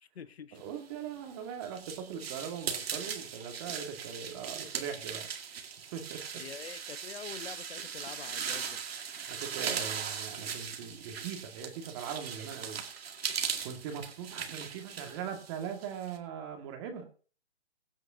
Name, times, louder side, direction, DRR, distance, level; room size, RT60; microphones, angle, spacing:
voice 1, 0.0-0.6 6.3-8.8, left 7 dB, 65° left, 12 dB, 1.1 m, -46 dB
voice 2, 0.5-5.3 5.9-6.2 9.3-12.8 13.6-17.1, right 8 dB, 25° right, 4 dB, 1.9 m, -40 dB
sound 1, 1.0-16.2, right 7 dB, 60° right, 2.1 m, -39 dB
22.5 x 8.0 x 2.7 m, 0.41 s
hypercardioid pair, 150°, 34 cm